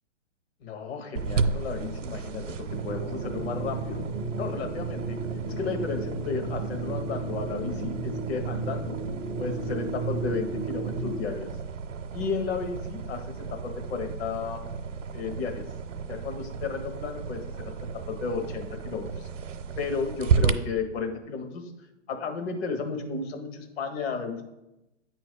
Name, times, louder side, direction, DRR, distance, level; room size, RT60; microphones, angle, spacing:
voice 1, 0.6-2.4 2.7-4.0 4.4-5.2 5.4-9.0 9.4-11.5 12.1-14.6 15.1-15.6 16.1-17.7 18.1-19.3 19.8-21.7 22.1-24.4, left 5 dB, 55° left, 4 dB, 1.3 m, -33 dB
sound 1, 1.1-20.5, right 5 dB, 80° right, 0.7 m, -33 dB
sound 2, 2.7-11.2, right 3 dB, 25° right, 0.4 m, -34 dB
8.8 x 3.1 x 5.0 m, 0.94 s
hypercardioid pair, 130°, 38 cm